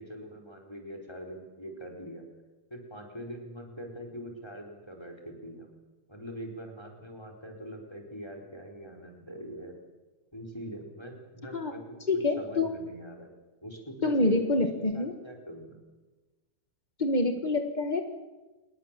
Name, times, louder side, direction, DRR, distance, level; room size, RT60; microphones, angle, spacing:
voice 1, 0.0-2.2 2.7-5.7 6.1-9.8 10.3-11.8 12.1-13.3 13.6-14.6 14.9-15.8, equal, 10° left, 3 dB, 4.4 m, -43 dB
voice 2, 12.1-12.7 14.0-15.1 17.0-18.0, left 2 dB, 40° left, 6 dB, 0.6 m, -26 dB
27.5 x 22.0 x 7.6 m, 1.2 s
omnidirectional pair, 3.7 m